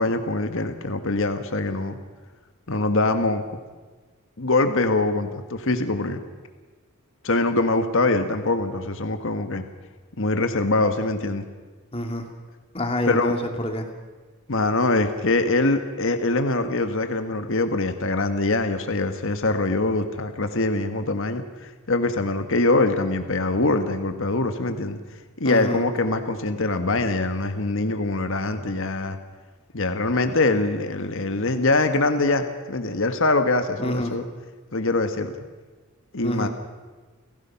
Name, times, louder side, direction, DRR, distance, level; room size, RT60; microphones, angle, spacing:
voice 1, 0.0-2.0 2.7-3.4 4.4-6.2 7.2-9.6 10.2-11.5 13.1-13.3 14.5-25.0 25.4-29.2 29.7-34.2 34.7-35.3 36.1-36.5, left 2 dB, 60° left, 7 dB, 1.5 m, -23 dB
voice 2, 11.9-12.2 12.7-13.8 25.4-25.8 33.8-34.1 36.2-36.5, left 1 dB, 25° left, 4 dB, 2.5 m, -26 dB
30.0 x 16.5 x 5.8 m, 1.3 s
head